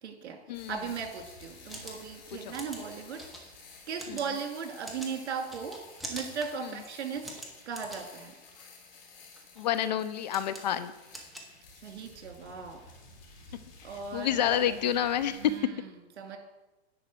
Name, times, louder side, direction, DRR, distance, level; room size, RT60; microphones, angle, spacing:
voice 1, 0.0-0.4 0.7-3.5 3.9-5.7 6.0-7.3 7.7-8.3 11.8-12.8 13.8-14.8 15.3-15.9 16.2-16.4, right 6 dB, 80° right, 3 dB, 2.5 m, -37 dB
sound 1, 0.5-15.6, left 4 dB, 60° left, 3.2 m, -53 dB
sound 2, 1.6-12.1, right 1 dB, ahead, 0.8 m, -46 dB
voice 2, 9.6-10.9 14.1-15.7, left 10 dB, 40° left, 14 dB, 0.5 m, -29 dB
10.5 x 4.3 x 7.6 m, 1.1 s
hypercardioid pair, 165°, 33 cm